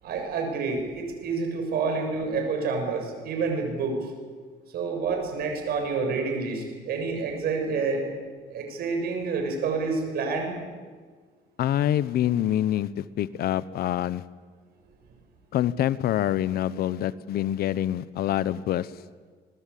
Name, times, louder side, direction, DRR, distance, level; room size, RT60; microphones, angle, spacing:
voice 1, 0.0-4.0 4.7-8.0 8.5-10.6, right 4 dB, 65° right, 4 dB, 7.4 m, -28 dB
voice 2, 11.6-14.2 15.5-18.9, left 12 dB, 65° left, 17 dB, 1.0 m, -26 dB
26.0 x 20.5 x 8.5 m, 1.5 s
cardioid pair, 110°, 17 cm